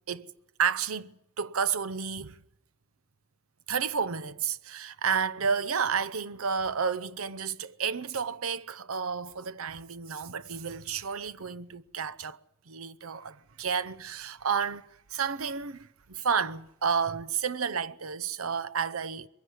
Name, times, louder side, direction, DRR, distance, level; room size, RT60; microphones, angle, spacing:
voice 1, 0.6-2.4 3.7-12.4 12.7-19.3, right 6 dB, 80° right, 0.8 m, -31 dB
22.0 x 15.5 x 9.7 m
head